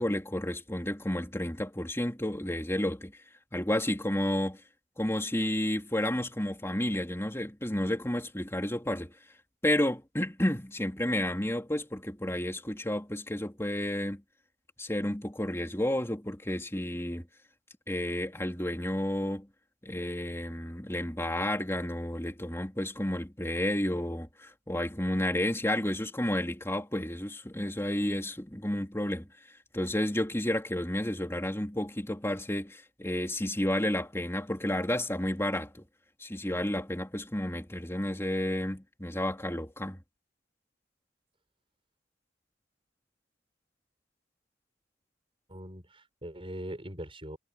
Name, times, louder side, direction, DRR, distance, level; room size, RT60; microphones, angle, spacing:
voice 1, 0.0-3.1 3.5-4.6 5.0-9.1 9.6-14.2 14.8-17.3 17.9-19.5 19.8-29.3 29.7-35.8 36.2-40.0, left 1 dB, 15° left, 3.3 m, -31 dB
voice 2, 45.5-47.4, right 1 dB, 30° right, 5.8 m, -41 dB
head